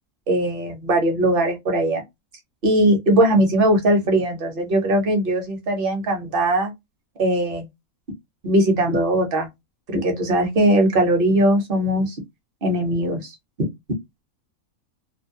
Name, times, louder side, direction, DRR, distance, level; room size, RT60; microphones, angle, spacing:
voice 1, 0.3-2.0 2.6-6.7 7.2-7.7 8.4-9.5 9.9-12.2 12.6-13.3 13.6-13.7, right 1 dB, 45° right, 0.8 m, -20 dB
2.5 x 2.1 x 2.6 m
omnidirectional pair, 1.5 m